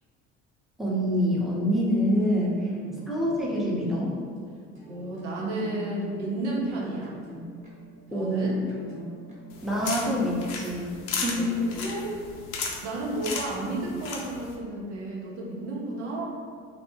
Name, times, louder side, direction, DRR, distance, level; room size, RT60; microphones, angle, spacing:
voice 1, 0.8-2.7 3.1-4.1 8.1-8.5 9.6-11.6, equal, ahead, -5 dB, 0.6 m, -26 dB
voice 2, 2.5-3.0 4.9-7.1 8.1-8.6 11.3-12.1 12.8-16.3, right 2 dB, 90° right, -4 dB, 0.6 m, -32 dB
sound 1, 3.0-10.7, equal, 20° right, 0.9 m, -46 dB
sound 2, 9.5-14.6, left 4 dB, 75° left, 0.5 m, -35 dB
2.6 x 2.1 x 2.8 m, 2.1 s
hypercardioid pair, 65°, 34 cm